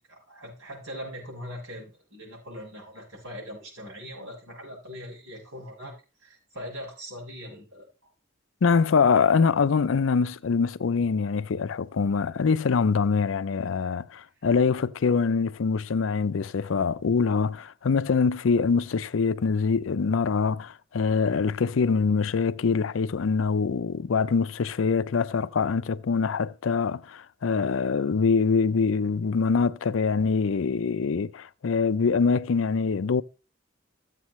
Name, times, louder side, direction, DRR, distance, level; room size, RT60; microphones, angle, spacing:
voice 1, 0.1-7.9, equal, 80° right, 7.0 m, -41 dB
voice 2, 8.6-33.2, left 5 dB, 85° left, 0.5 m, -24 dB
14.0 x 8.2 x 3.1 m
head